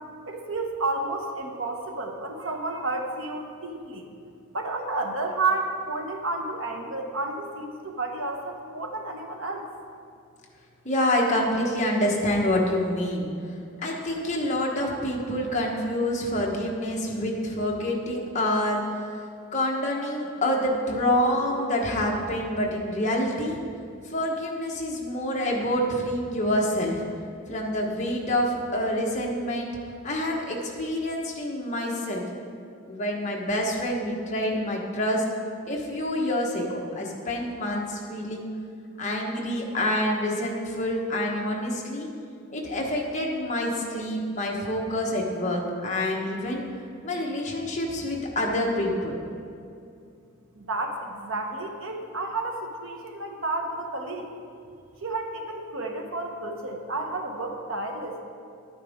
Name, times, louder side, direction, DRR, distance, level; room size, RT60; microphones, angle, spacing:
voice 1, 0.2-4.1 4.5-9.7 50.5-54.3 55.0-58.2, right 2 dB, 65° right, 2 dB, 1.1 m, -31 dB
voice 2, 10.8-13.3 13.8-18.8 19.5-23.6 24.0-27.0 27.5-29.7 30.0-32.2 32.9-35.2 35.6-38.5 39.0-42.1 42.5-46.6 47.0-49.1, left 1 dB, 35° left, -1 dB, 1.2 m, -27 dB
11.5 x 9.2 x 3.6 m, 2.4 s
head